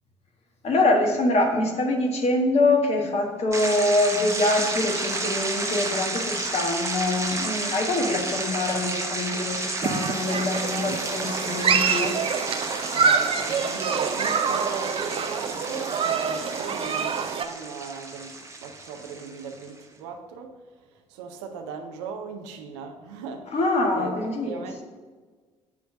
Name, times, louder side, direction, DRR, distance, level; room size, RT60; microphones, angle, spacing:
voice 1, 0.6-12.1 23.5-24.6, left 2 dB, 45° left, 1 dB, 1.5 m, -24 dB
sound 1, 3.5-19.7, right 2 dB, 20° right, 1.1 m, -32 dB
Human group actions, 9.8-17.5, right 6 dB, 40° right, 0.6 m, -26 dB
voice 2, 12.9-23.6 23.9-24.8, right 5 dB, 70° right, 5 dB, 0.7 m, -38 dB
8.1 x 3.2 x 6.1 m, 1.4 s
figure-of-eight pair, 50°, 15 cm